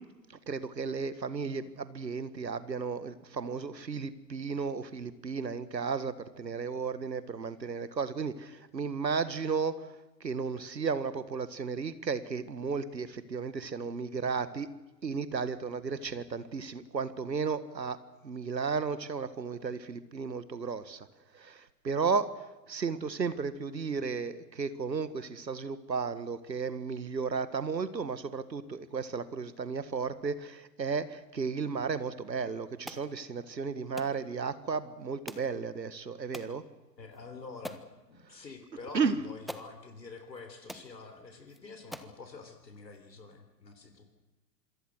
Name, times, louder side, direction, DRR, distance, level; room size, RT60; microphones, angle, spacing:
voice 1, 0.5-9.9 10.2-14.7 15.0-18.0 18.2-21.1 21.3-22.3 22.7-36.6 38.9-39.3, right 5 dB, 90° right, 14 dB, 1.8 m, -34 dB
sound 1, 32.9-33.1 34.0-34.2 35.3-35.5 36.3-36.5 37.1-37.2 37.6-37.9 38.9-39.0 39.5-39.7 40.4-40.5 40.7-40.9 41.5-41.6 41.9-42.2, equal, ahead, 1.4 m, -43 dB
voice 2, 37.0-37.8 38.1-44.0, left 4 dB, 85° left, 7 dB, 3.8 m, -47 dB
27.0 x 22.5 x 6.3 m, 1.1 s
figure-of-eight pair, 110°, 49 cm